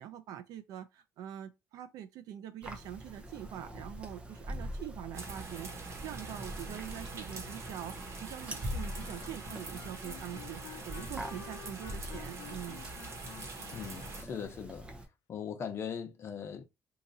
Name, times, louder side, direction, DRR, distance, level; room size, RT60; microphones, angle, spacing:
voice 1, 0.0-12.8, right 11 dB, 80° right, 0.6 m, -44 dB
sound 1, 2.6-15.1, equal, 15° right, 0.7 m, -44 dB
sound 2, 5.1-14.2, right 3 dB, 50° right, 1.2 m, -44 dB
sound 3, 8.8-14.5, left 11 dB, 75° left, 0.5 m, -52 dB
voice 2, 13.7-14.9 15.3-16.6, left 7 dB, 40° left, 0.9 m, -40 dB
2.9 x 2.5 x 4.1 m
cardioid pair, 135°, 6 cm